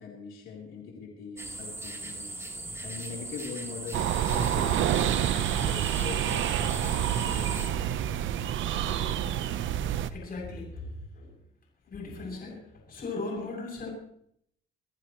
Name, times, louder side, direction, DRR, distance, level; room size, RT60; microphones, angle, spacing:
voice 1, 0.0-2.3 2.8-8.2, left 5 dB, 80° left, -2 dB, 3.9 m, -42 dB
sound 1, 1.4-7.7, right 2 dB, 15° right, 3.6 m, -39 dB
sound 2, 3.9-10.1, right 10 dB, 80° right, 1.0 m, -28 dB
voice 2, 9.8-11.3 11.9-12.6 12.9-13.9, left 3 dB, 50° left, -2 dB, 7.7 m, -38 dB
26.0 x 15.5 x 3.2 m, 0.71 s
cardioid pair, 90°, 20 cm